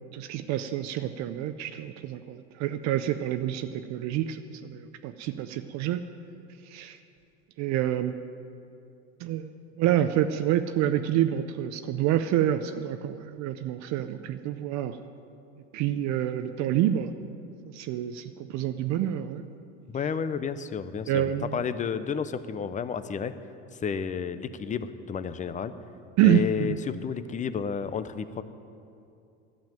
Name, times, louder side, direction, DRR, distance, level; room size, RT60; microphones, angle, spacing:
voice 1, 0.0-6.0 6.6-7.0 7.6-8.1 9.2-15.0 15.7-17.1 17.7-19.4 21.1-21.6 26.2-26.8, right 11 dB, 55° right, 9 dB, 0.6 m, -27 dB
voice 2, 19.9-23.3 23.7-25.7 26.2-28.4, left 6 dB, 20° left, 13 dB, 0.5 m, -31 dB
12.0 x 7.3 x 9.0 m, 2.6 s
supercardioid pair, 105°, 34 cm